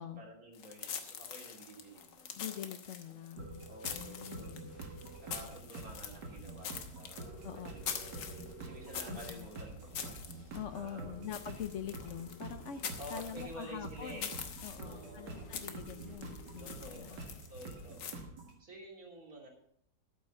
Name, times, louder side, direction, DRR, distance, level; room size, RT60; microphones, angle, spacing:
voice 1, 0.2-2.4 3.1-3.2 3.7-4.5 5.2-11.3 13.0-14.3 14.8-15.4 16.6-18.2 18.6-19.5, right 1 dB, 55° right, -1 dB, 3.4 m, -51 dB
sound 1, 0.5-18.1, left 7 dB, 90° left, 1.8 m, -45 dB
voice 2, 2.4-3.6 3.9-4.8 7.4-7.7 9.1-9.5 10.5-12.9 13.1-14.3 14.6-17.2, left 9 dB, 70° left, 11 dB, 0.7 m, -44 dB
sound 2, 3.4-18.5, right 3 dB, 75° right, 2.4 m, -47 dB
sound 3, 4.5-17.2, right 2 dB, 5° left, 6.5 m, -58 dB
13.5 x 8.2 x 5.4 m, 0.69 s
omnidirectional pair, 1.9 m